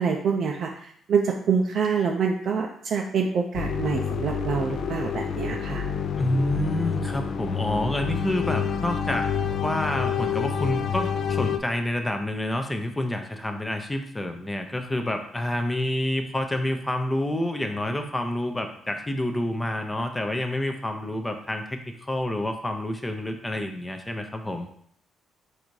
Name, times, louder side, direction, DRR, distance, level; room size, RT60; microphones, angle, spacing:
voice 1, 0.0-5.8, right 6 dB, 60° right, 1 dB, 0.4 m, -26 dB
sound 1, 3.5-11.6, left 7 dB, 60° left, 0.3 m, -28 dB
voice 2, 6.2-9.3 9.6-24.7, left 1 dB, 15° left, 5 dB, 0.5 m, -28 dB
4.0 x 2.6 x 4.5 m, 0.64 s
cardioid pair, 90°, 0 cm